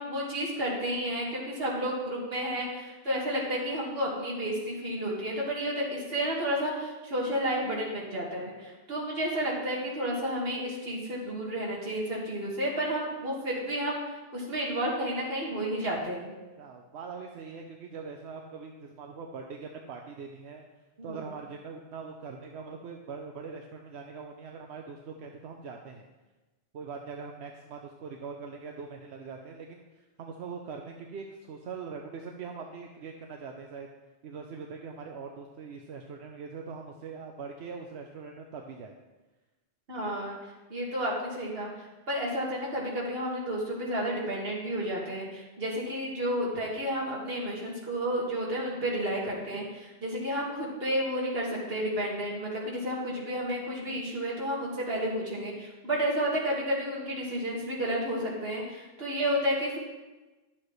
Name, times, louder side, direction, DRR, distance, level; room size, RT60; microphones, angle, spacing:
voice 1, 0.0-14.0 14.3-16.3 21.0-21.2 39.9-40.4 40.7-41.7 42.1-59.8, equal, 65° right, -3 dB, 2.0 m, -31 dB
voice 2, 16.6-20.6 21.0-26.1 26.7-29.8 30.2-33.9 34.2-38.9, right 5 dB, 85° right, 2 dB, 0.9 m, -42 dB
11.5 x 7.3 x 3.1 m, 1.1 s
omnidirectional pair, 1.1 m